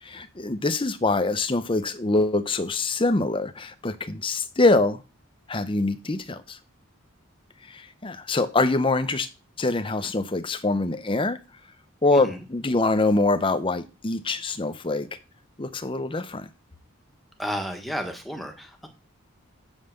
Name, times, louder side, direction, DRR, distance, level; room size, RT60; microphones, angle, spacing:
voice 1, 0.0-5.0 5.5-6.6 7.6-9.3 9.6-11.4 12.0-15.1 15.6-16.5, left 2 dB, 25° left, 0.7 m, -24 dB
voice 2, 17.4-18.9, equal, ahead, 1.3 m, -32 dB
7.2 x 5.6 x 6.5 m
head